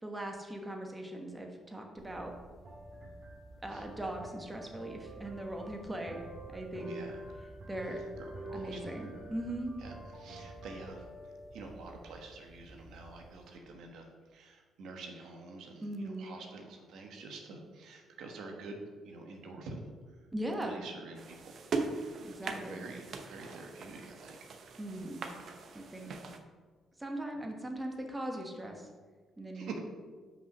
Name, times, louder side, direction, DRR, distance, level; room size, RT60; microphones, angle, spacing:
voice 1, 0.0-2.3 3.6-6.2 6.5-7.0 7.7-8.0 8.5-9.7 15.8-16.3 20.3-20.8 22.2-22.8 24.8-25.2 25.7-26.1 27.0-28.9 29.4-29.8, right 1 dB, 15° right, 2 dB, 1.3 m, -39 dB
sound 1, 2.0-13.6, right 1 dB, 40° right, 1.9 m, -47 dB
voice 2, 6.8-7.2 8.5-8.9 9.8-11.0 11.5-18.8 19.0-19.8 20.6-21.6 21.9-24.4 29.5-29.8, right 3 dB, 80° right, 2 dB, 1.2 m, -47 dB
sound 2, 21.1-26.4, right 4 dB, 60° right, 0.8 m, -40 dB
5.6 x 5.5 x 5.9 m, 1.4 s
cardioid pair, 90°, 0 cm